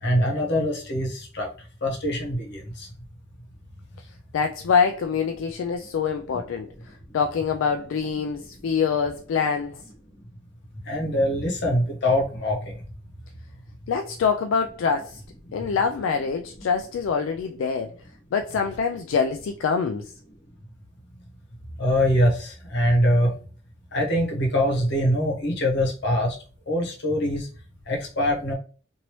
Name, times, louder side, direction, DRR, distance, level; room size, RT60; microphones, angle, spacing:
voice 1, 0.0-1.5 1.8-2.9 10.9-12.8 21.8-23.3 23.9-26.4 26.7-27.5 27.9-28.5, equal, 60° left, 1.1 m, -23 dB
voice 2, 4.3-9.8 13.9-15.2 15.5-17.9 18.3-20.1, left 6 dB, 80° left, 0.3 m, -25 dB
3.0 x 2.6 x 3.0 m
head